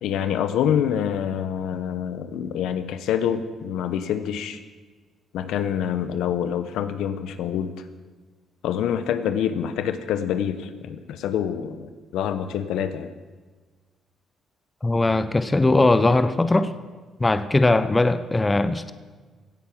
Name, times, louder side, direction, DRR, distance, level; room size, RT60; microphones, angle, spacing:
voice 1, 0.0-4.6 5.3-7.7 8.6-11.8 12.1-13.1, left 9 dB, 85° left, 10 dB, 0.8 m, -26 dB
voice 2, 14.8-16.7 17.2-18.9, left 2 dB, 20° left, 12 dB, 0.7 m, -20 dB
16.5 x 8.5 x 6.0 m, 1.4 s
cardioid pair, 90°, 0 cm